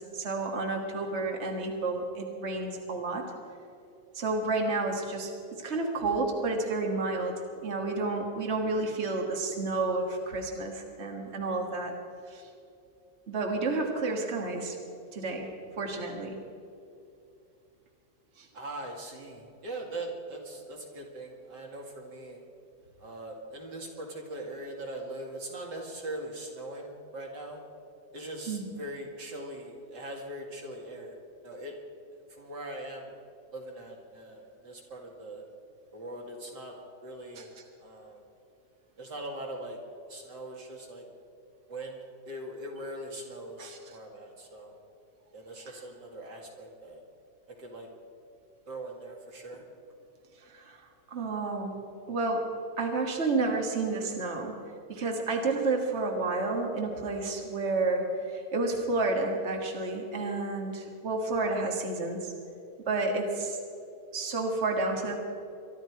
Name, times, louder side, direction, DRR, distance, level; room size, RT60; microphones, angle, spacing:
voice 1, 0.0-3.3 4.2-11.9 12.3-12.4 13.3-14.8 15.1-15.5 15.8-16.4 18.4-18.5 28.5-28.7 37.4-37.5 43.6-43.8 45.7-45.8 50.5-50.8 51.1-51.8 52.1-52.5 52.8-54.6 54.9-62.3 62.9-63.6 64.1-65.2, right 3 dB, 40° right, 1 dB, 2.0 m, -30 dB
voice 2, 18.5-22.4 23.0-27.6 28.1-31.2 31.4-31.8 32.3-33.1 33.5-35.4 35.9-36.8 37.0-37.5 37.8-38.2 39.0-39.8 40.1-41.0 41.7-42.0 42.2-44.8 45.3-47.0 47.6-47.9 48.7-49.6, right 1 dB, 80° right, 0 dB, 2.8 m, -41 dB
23.5 x 12.0 x 4.7 m, 2.6 s
omnidirectional pair, 1.9 m